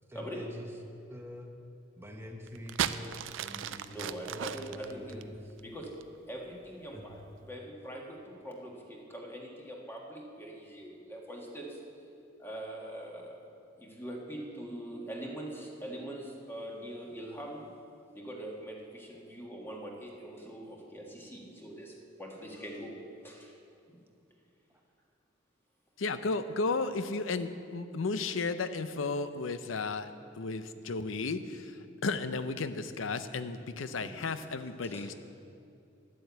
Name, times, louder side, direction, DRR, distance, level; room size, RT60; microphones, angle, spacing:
voice 1, 0.1-0.7 1.1-1.5 2.0-5.5 6.9-7.0, left 1 dB, 10° right, 2 dB, 1.2 m, -46 dB
sound 1, 2.5-6.2 7.0-7.3, right 9 dB, 70° right, 0.4 m, -36 dB
voice 2, 3.9-5.3 5.6-5.9 6.3-7.2 7.5-11.8 12.4-17.7 18.1-23.5 23.9-24.0 34.0-34.3 34.8-35.1, right 1 dB, 10° left, -1 dB, 1.7 m, -43 dB
voice 3, 26.0-30.1 30.4-35.1, left 3 dB, 75° left, 11 dB, 0.6 m, -33 dB
11.0 x 7.7 x 8.2 m, 2.6 s
head